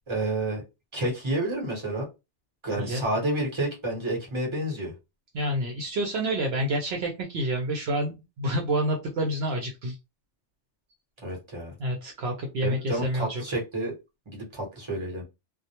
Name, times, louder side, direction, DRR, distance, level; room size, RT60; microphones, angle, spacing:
voice 1, 0.1-0.6 0.9-2.1 2.6-4.9 11.2-11.7 12.6-13.9 14.3-15.2, right 1 dB, 25° right, -1 dB, 1.0 m, -29 dB
voice 2, 5.3-10.0 11.8-13.4, right 1 dB, 70° right, 1 dB, 0.8 m, -28 dB
2.2 x 2.1 x 2.8 m, 0.25 s
omnidirectional pair, 1.2 m